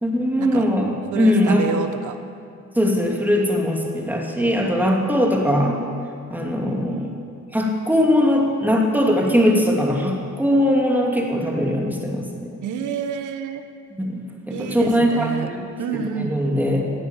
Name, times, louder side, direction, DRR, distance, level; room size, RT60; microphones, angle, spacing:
voice 1, 0.0-1.7 2.8-5.8 6.3-7.1 7.5-12.5 13.9-15.6 16.1-16.9, equal, 5° right, 0 dB, 2.5 m, -20 dB
voice 2, 1.1-2.2 4.8-5.0 12.6-13.6 14.5-15.5 15.8-16.4, right 7 dB, 75° right, 8 dB, 1.2 m, -28 dB
15.0 x 9.2 x 7.4 m, 2.3 s
cardioid pair, 90°, 30 cm